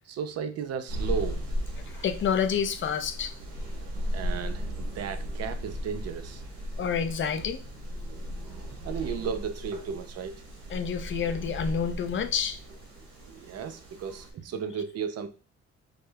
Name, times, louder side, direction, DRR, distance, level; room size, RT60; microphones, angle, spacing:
voice 1, 0.1-1.4 4.1-6.4 8.1-8.3 8.8-10.4 13.3-15.3, right 7 dB, 55° right, 9 dB, 0.5 m, -34 dB
sound 1, 0.9-14.3, equal, 85° right, 1.1 m, -36 dB
voice 2, 2.0-3.3 6.8-7.6 10.7-12.6, left 7 dB, 40° left, 9 dB, 0.4 m, -28 dB
4.8 x 2.0 x 2.2 m, 0.36 s
cardioid pair, 90°, 30 cm